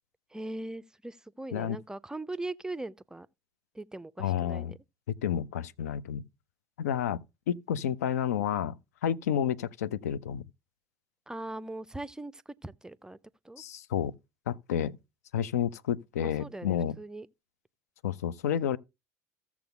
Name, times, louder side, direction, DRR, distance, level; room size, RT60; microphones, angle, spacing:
voice 1, 0.3-3.3 3.7-4.8 11.3-13.2 13.4-13.6 16.2-17.3, right 2 dB, 10° right, 0.4 m, -40 dB
voice 2, 4.2-4.8 5.1-6.2 6.8-7.2 7.5-8.8 9.0-10.4 13.6-14.1 14.5-15.0 15.3-17.0 18.0-18.8, left 9 dB, 70° left, 0.4 m, -30 dB
15.5 x 7.1 x 2.3 m
figure-of-eight pair, 60°, 9 cm